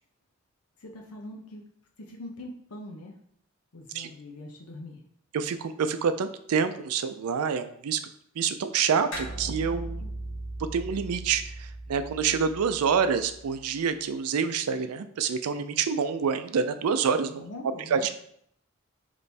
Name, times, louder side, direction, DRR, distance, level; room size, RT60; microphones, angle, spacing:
voice 1, 0.8-1.6 2.0-3.2 3.7-5.0 17.3-18.1, left 1 dB, 90° left, 0 dB, 0.7 m, -42 dB
voice 2, 5.3-8.0 8.4-10.0 10.7-17.5 17.9-18.1, right 6 dB, 85° right, 10 dB, 0.4 m, -27 dB
sound 1, 9.1-13.9, right 1 dB, 55° left, 1.3 m, -39 dB
3.4 x 3.1 x 4.1 m, 0.67 s
head